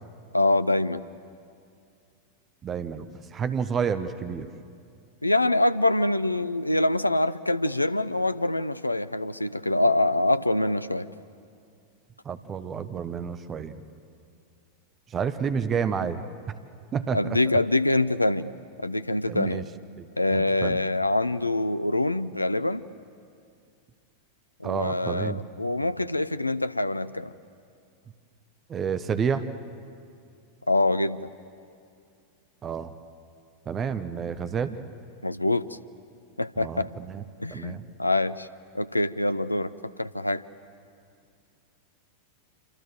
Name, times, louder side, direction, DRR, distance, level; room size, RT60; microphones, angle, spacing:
voice 1, 0.3-1.0 5.2-11.1 17.1-18.5 18.8-19.6 20.2-22.8 24.6-27.3 30.7-31.3 35.2-35.6 36.4-36.9 37.4-38.5 38.7-39.7 40.0-40.4, left 2 dB, 85° left, 15 dB, 0.6 m, -25 dB
voice 2, 2.6-4.5 12.2-13.8 15.1-16.2 16.9-17.4 19.3-19.6 20.0-20.8 24.6-25.4 28.7-29.5 32.6-32.9 33.7-34.8 36.6-37.2 37.5-37.9, right 6 dB, 25° right, 11 dB, 1.0 m, -30 dB
28.0 x 26.5 x 7.6 m, 2.4 s
figure-of-eight pair, 90°, 0 cm